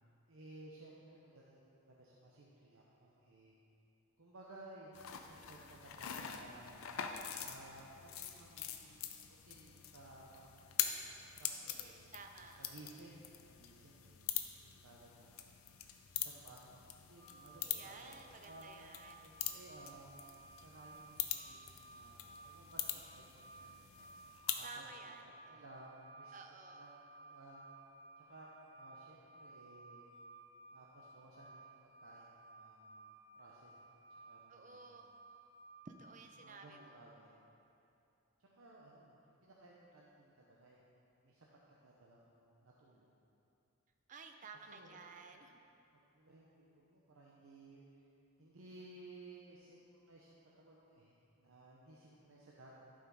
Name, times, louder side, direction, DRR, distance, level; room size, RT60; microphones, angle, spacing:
voice 1, 0.3-3.5 4.2-6.7 7.4-12.0 12.6-15.3 16.1-18.7 19.2-20.2 20.6-24.1 24.5-25.2 25.5-26.4 26.7-27.6 28.2-30.1 30.7-31.7 32.0-33.1 33.4-34.9 36.4-37.3 38.4-40.9 41.2-41.5 41.8-42.3 42.6-43.1 44.7-45.0 45.3-45.4 45.9-47.8 48.4-52.8, right 2 dB, 75° right, -4 dB, 0.8 m, -58 dB
sound 1, 4.9-24.7, left 10 dB, 75° left, 0.5 m, -44 dB
voice 2, 11.7-12.7 17.6-19.3 24.6-25.2 26.3-26.9 34.5-35.1 35.8-37.1 44.1-45.6, right 4 dB, 35° right, 5 dB, 0.5 m, -54 dB
sound 2, 17.2-36.6, right 3 dB, 20° left, 1.6 m, -58 dB
11.5 x 5.1 x 4.0 m, 2.7 s
head